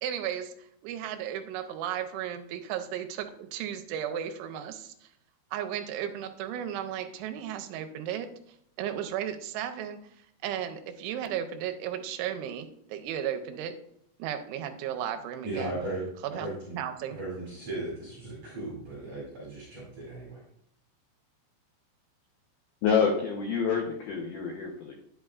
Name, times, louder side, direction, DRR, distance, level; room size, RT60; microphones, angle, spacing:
voice 1, 0.0-5.1 5.5-8.3 8.8-10.0 10.4-13.7 14.2-15.8 16.2-16.5 16.7-17.2, right 10 dB, 80° right, 7 dB, 2.9 m, -34 dB
voice 2, 15.4-16.1 16.4-16.8 17.1-20.4, right 2 dB, 45° right, -6 dB, 2.7 m, -36 dB
voice 3, 22.8-25.0, left 6 dB, 90° left, 1 dB, 2.1 m, -27 dB
10.0 x 8.1 x 2.4 m, 0.72 s
omnidirectional pair, 5.7 m